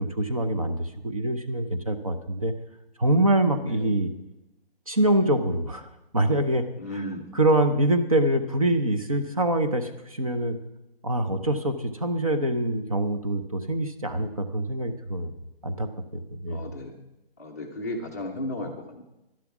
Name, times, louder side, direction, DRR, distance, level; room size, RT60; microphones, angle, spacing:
voice 1, 0.0-2.5 3.0-4.1 4.9-6.6 7.4-10.6 11.0-15.3 15.6-16.7, right 1 dB, 35° right, 8 dB, 0.8 m, -25 dB
voice 2, 6.8-7.3 16.5-17.0 17.4-19.0, left 1 dB, 15° left, -2 dB, 0.8 m, -34 dB
12.0 x 11.0 x 6.0 m, 0.91 s
hypercardioid pair, 180°, 30 cm